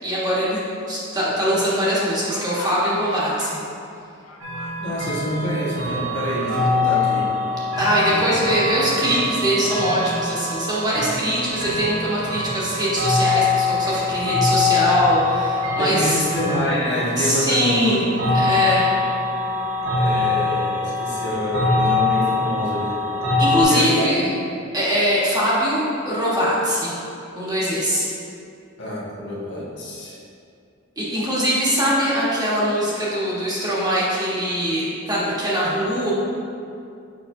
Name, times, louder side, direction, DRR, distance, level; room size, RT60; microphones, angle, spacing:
voice 1, 0.0-0.6 0.9-3.6 7.8-16.2 17.2-18.1 18.3-18.9 23.4-24.3 24.7-27.0 27.3-28.1 31.0-36.1, equal, 20° right, -8 dB, 1.3 m, -22 dB
sound 1, 1.5-3.5 4.2-5.1 5.8-7.0 7.4-8.5, left 3 dB, 90° left, 0.7 m, -37 dB
sound 2, 4.4-23.6, left 3 dB, 80° right, 1.4 m, -23 dB
voice 2, 4.8-7.3 8.0-8.3 15.8-17.8 19.9-23.0 23.5-24.3 28.8-30.2, equal, 55° left, -6 dB, 1.4 m, -27 dB
6.7 x 5.8 x 2.7 m, 2.5 s
head